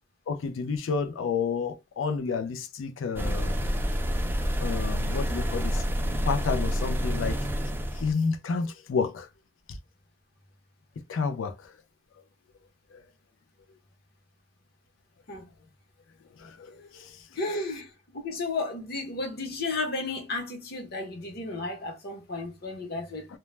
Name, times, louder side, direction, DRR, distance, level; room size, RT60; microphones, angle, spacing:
voice 1, 0.3-3.6 4.6-5.8 6.2-7.4 8.0-9.3 11.1-11.7 12.9-13.0 16.4-17.1, left 5 dB, 85° left, 0.4 m, -30 dB
sound 1, 3.2-8.1, equal, 10° right, 0.3 m, -28 dB
voice 2, 17.4-17.9 18.1-23.3, left 3 dB, 55° left, 0.7 m, -33 dB
2.2 x 2.0 x 3.1 m
head